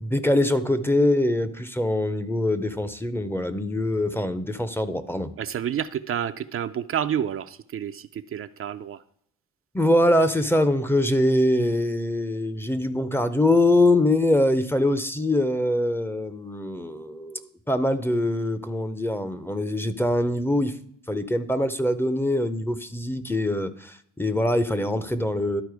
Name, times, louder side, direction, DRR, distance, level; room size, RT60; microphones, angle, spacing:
voice 1, 0.0-5.3 9.7-20.7 21.1-25.6, left 1 dB, 5° left, 12 dB, 0.6 m, -23 dB
voice 2, 5.4-9.0, right 9 dB, 45° right, 9 dB, 0.5 m, -29 dB
12.0 x 4.3 x 4.8 m, 0.68 s
cardioid pair, 90°, 30 cm